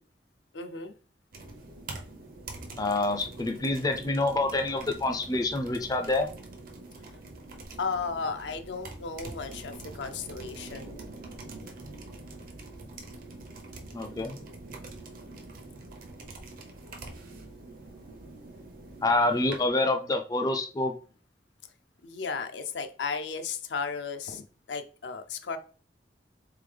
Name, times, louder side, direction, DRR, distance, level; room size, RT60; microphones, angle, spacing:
voice 1, 0.5-0.9 7.8-11.0 22.0-24.4 24.7-25.6, left 5 dB, 80° left, 7 dB, 0.6 m, -34 dB
sound 1, 1.3-19.7, right 2 dB, 50° right, 0.7 m, -44 dB
voice 2, 2.7-6.3 13.9-14.4 19.0-20.9, left 2 dB, 20° left, 6 dB, 0.4 m, -27 dB
3.8 x 3.7 x 3.3 m, 0.38 s
head